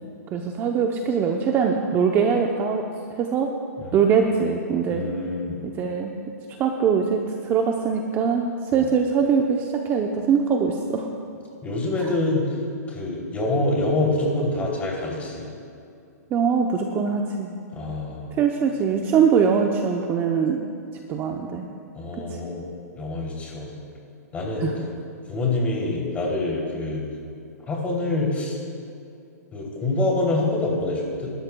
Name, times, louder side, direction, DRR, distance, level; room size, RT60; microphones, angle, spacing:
voice 1, 0.3-2.8 3.2-3.5 3.9-5.0 5.8-6.1 6.6-11.1 12.0-12.1 16.3-17.5 18.4-20.6 21.1-21.7 24.6-24.7, right 6 dB, 25° right, 3 dB, 0.7 m, -22 dB
voice 2, 4.9-5.6 8.8-8.9 11.6-12.5 12.9-15.5 17.7-18.3 21.9-22.6 23.0-23.7 24.3-24.7 25.3-27.0 27.7-28.6 29.5-31.3, left 2 dB, 15° left, -2 dB, 3.0 m, -26 dB
26.5 x 13.0 x 2.3 m, 2.5 s
hypercardioid pair, 145°, 9 cm